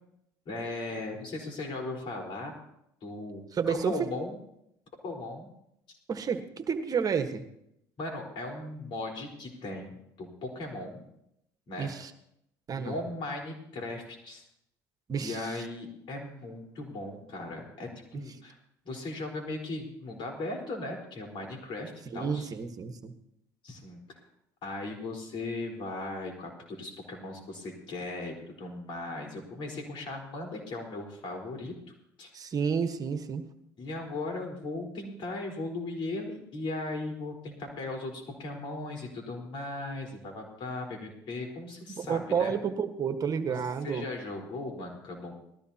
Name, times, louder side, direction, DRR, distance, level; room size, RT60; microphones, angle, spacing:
voice 1, 0.5-2.6 3.0-4.4 5.0-5.5 8.0-11.0 11.7-11.9 12.7-14.4 15.2-18.6 18.8-22.5 23.6-24.0 24.6-31.7 32.2-32.3 33.8-42.5 43.5-43.6 43.8-45.3, left 2 dB, 60° left, 1 dB, 4.3 m, -37 dB
voice 2, 3.5-4.1 6.1-7.4 11.8-12.1 12.7-13.0 15.1-15.5 22.1-23.1 32.3-33.4 41.9-44.0, right 6 dB, 40° right, 8 dB, 1.3 m, -30 dB
19.5 x 14.0 x 2.9 m, 0.79 s
hypercardioid pair, 70°, 10 cm